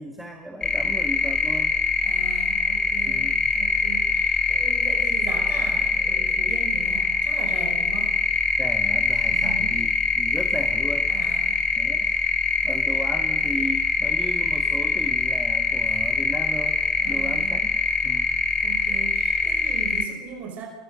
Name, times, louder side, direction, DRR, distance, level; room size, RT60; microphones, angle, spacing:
voice 1, 0.0-1.7 3.1-3.5 8.6-11.1 11.8-12.1 12.6-16.8 17.1-17.7 18.0-18.3, right 1 dB, 5° right, 4 dB, 2.3 m, -35 dB
sound 1, 0.6-20.1, left 4 dB, 20° left, 3.3 m, -23 dB
voice 2, 2.0-8.1 9.3-9.8 11.1-11.6 17.0-17.5 18.6-20.7, right 6 dB, 45° right, 2 dB, 5.5 m, -38 dB
25.5 x 22.0 x 6.6 m, 1.3 s
hypercardioid pair, 100°, 4 cm